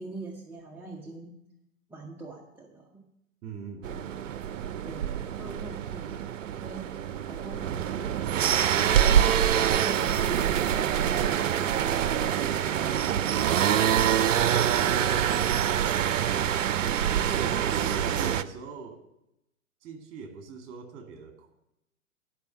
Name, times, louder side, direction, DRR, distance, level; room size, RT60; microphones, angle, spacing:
voice 1, 0.0-1.4 1.9-3.1 4.8-6.2 6.5-8.3 8.9-13.3, right 3 dB, 5° right, -3 dB, 0.7 m, -44 dB
voice 2, 3.4-4.1 14.8-15.2 17.1-19.0 19.8-21.5, right 5 dB, 30° right, 4 dB, 2.1 m, -39 dB
sound 1, 3.8-18.4, right 9 dB, 60° right, 0.6 m, -25 dB
11.5 x 5.6 x 7.1 m, 0.85 s
figure-of-eight pair, 110°, 42 cm